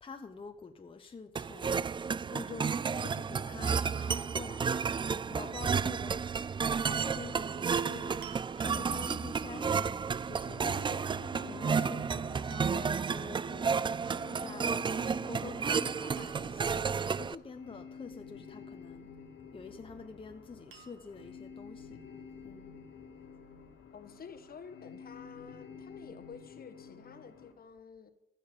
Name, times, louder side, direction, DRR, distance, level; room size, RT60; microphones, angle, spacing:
voice 1, 0.0-1.9 2.3-4.9 5.3-6.2 6.8-11.1 11.6-12.1 12.4-13.8 14.4-14.8 15.2-19.1 19.5-22.0 22.4-22.8, left 5 dB, 25° left, 1.1 m, -47 dB
sound 1, 1.4-17.4, right 6 dB, 25° right, 0.3 m, -32 dB
sound 2, 8.2-9.1 11.5-11.9 12.5-13.0 15.0-15.4 15.7-15.8 16.2-16.8 19.1-19.7 20.7-21.3 22.1-22.2, right 8 dB, 80° right, 1.9 m, -54 dB
sound 3, 9.6-27.5, left 6 dB, 90° left, 2.3 m, -51 dB
voice 2, 11.5-11.9 23.9-28.1, left 6 dB, 50° left, 1.5 m, -50 dB
15.5 x 6.4 x 6.9 m
cardioid pair, 90°, 20 cm